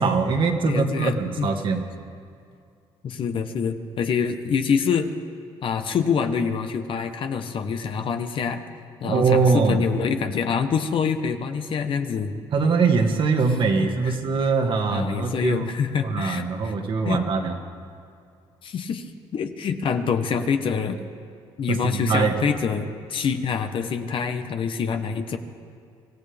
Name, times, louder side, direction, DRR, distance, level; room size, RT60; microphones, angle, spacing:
voice 1, 0.0-1.8 9.0-9.9 12.5-15.7 16.0-17.6 21.7-22.3, right 4 dB, 50° right, 4 dB, 1.8 m, -22 dB
voice 2, 0.6-1.5 3.0-5.1 5.6-8.6 9.0-12.4 14.0-14.1 14.9-16.7 17.0-17.2 18.6-21.0 21.6-25.4, left 6 dB, 55° left, 7 dB, 1.2 m, -26 dB
25.0 x 15.0 x 3.5 m, 2.3 s
cardioid pair, 90°, 11 cm